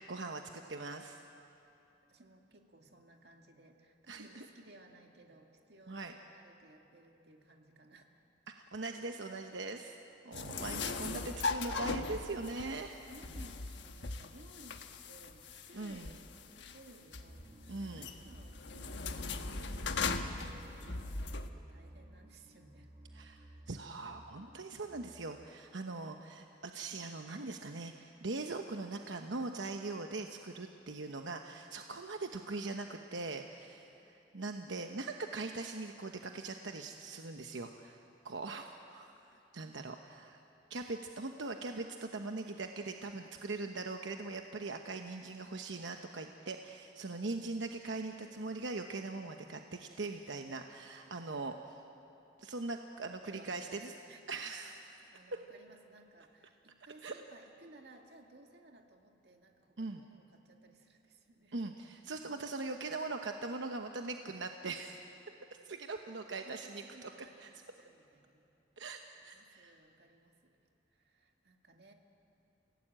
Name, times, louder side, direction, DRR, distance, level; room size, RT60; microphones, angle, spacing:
voice 1, 0.1-1.2 4.1-4.5 5.9-6.1 8.7-10.0 10.2-13.0 15.7-16.1 17.7-18.1 23.1-40.4 40.7-51.8 52.4-53.9 54.3-55.1 57.0-57.1 59.8-60.0 61.5-65.1 65.6-67.1 67.4-67.5 68.8-69.7, right 3 dB, 85° right, 4 dB, 1.0 m, -41 dB
voice 2, 2.1-8.2 13.1-16.3 16.5-22.9 53.3-53.8 54.1-54.4 55.1-61.6 66.4-68.5 69.3-70.5 70.9-71.9, right 2 dB, 60° right, 3 dB, 2.1 m, -59 dB
sound 1, 10.3-21.5, left 4 dB, 75° left, 1.3 m, -39 dB
sound 2, 17.3-25.5, right 1 dB, 25° right, 1.9 m, -56 dB
30.0 x 17.0 x 9.0 m, 2.8 s
head